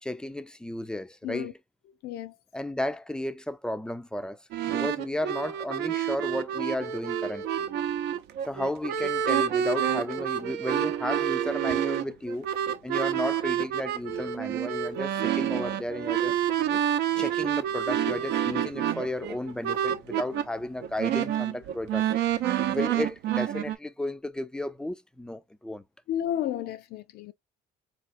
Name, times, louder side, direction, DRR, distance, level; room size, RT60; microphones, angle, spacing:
voice 1, 0.0-1.6 2.5-7.7 8.5-12.5 12.8-16.4 17.1-22.1 22.7-25.8, left 1 dB, 5° left, 0.4 m, -33 dB
voice 2, 2.0-2.3 26.1-27.3, left 11 dB, 70° left, 0.4 m, -32 dB
sound 1, 4.5-20.4 20.8-23.8, right 10 dB, 80° right, 0.6 m, -28 dB
4.1 x 3.0 x 2.5 m
cardioid pair, 110°, 17 cm